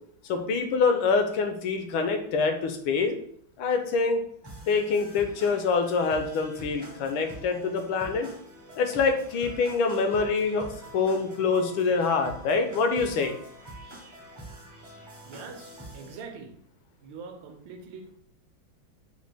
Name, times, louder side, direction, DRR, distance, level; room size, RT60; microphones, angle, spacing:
voice 1, 0.3-3.2 3.6-4.2 4.7-8.3 8.8-13.4, left 4 dB, 80° left, 6 dB, 1.4 m, -25 dB
sound 1, 4.4-16.2, right 1 dB, 25° right, 0.5 m, -45 dB
voice 2, 15.2-16.6 17.0-18.2, right 5 dB, 75° right, 4 dB, 1.4 m, -43 dB
5.1 x 2.2 x 3.3 m, 0.64 s
omnidirectional pair, 2.2 m